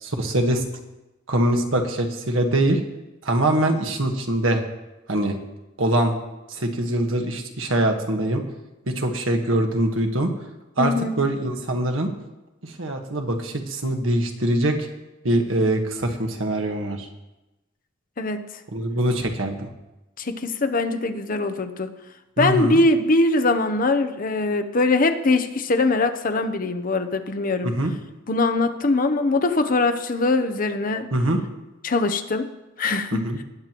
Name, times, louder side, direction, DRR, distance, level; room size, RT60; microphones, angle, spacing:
voice 1, 0.0-0.6 1.3-2.8 3.2-4.6 5.1-5.4 5.8-6.1 6.5-8.4 8.9-10.3 10.8-12.1 12.6-14.8 15.2-17.1 18.7-19.7 22.4-22.8 27.6-27.9 31.1-31.4 33.1-33.4, right 1 dB, 90° right, 4 dB, 1.4 m, -23 dB
voice 2, 10.8-11.2 18.2-18.5 20.2-21.9 22.4-27.7 28.3-31.1 31.8-32.5 32.8-33.3, left 2 dB, 45° left, 8 dB, 0.8 m, -22 dB
19.0 x 9.1 x 3.0 m, 1.0 s
head